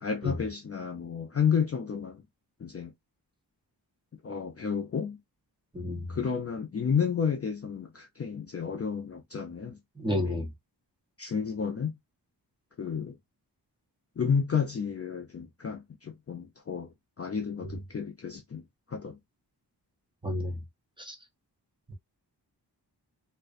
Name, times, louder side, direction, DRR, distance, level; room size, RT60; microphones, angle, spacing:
voice 1, 0.0-2.2 2.6-2.9 4.2-5.2 6.1-9.8 10.2-10.4 11.2-12.0 12.8-13.2 14.2-19.2, left 6 dB, 35° left, 0.4 m, -31 dB
voice 2, 5.7-6.2 10.0-10.5 20.2-20.5 21.0-21.2 21.9-22.0, left 1 dB, 10° right, 0.7 m, -31 dB
2.4 x 2.1 x 2.4 m
wide cardioid pair, 90°, 42 cm